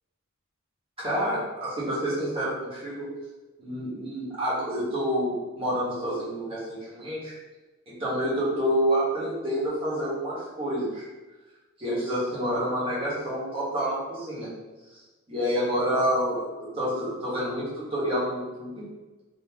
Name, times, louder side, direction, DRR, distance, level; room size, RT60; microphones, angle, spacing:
voice 1, 1.0-3.1 3.6-7.3 8.0-11.0 11.8-14.5 15.3-16.4 16.8-18.8, equal, 25° right, -9 dB, 1.5 m, -28 dB
3.5 x 3.1 x 2.9 m, 1.2 s
head